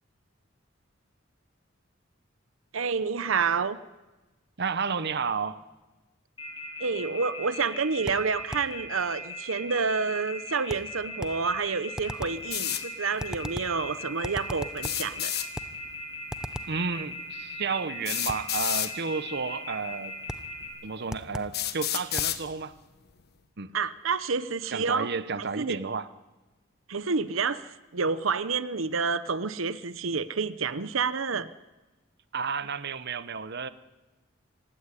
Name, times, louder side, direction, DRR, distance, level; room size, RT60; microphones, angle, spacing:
voice 1, 2.7-3.8 6.8-15.3 23.7-25.1 25.6-25.8 26.9-31.5, right 5 dB, 80° right, 0.9 m, -29 dB
voice 2, 4.6-5.6 16.7-20.1 20.8-22.7 23.6-23.7 24.7-26.1 32.3-33.7, right 5 dB, 55° right, 0.9 m, -32 dB
Telephone, 6.4-20.7, left 2 dB, 25° left, 7.7 m, -38 dB
sound 1, 8.1-8.8 10.7-11.5 12.0-12.5 13.2-13.8 14.2-15.1 15.5-15.8 16.3-16.8 18.3-18.6 20.3-20.6 21.1-21.6 22.2-22.4, equal, 5° right, 0.9 m, -38 dB
sound 2, 12.5-12.8 14.8-15.5 16.9-17.0 18.0-18.9 19.9-20.0 20.7-20.8 21.5-22.4, left 12 dB, 55° left, 1.5 m, -30 dB
25.5 x 16.5 x 9.9 m
head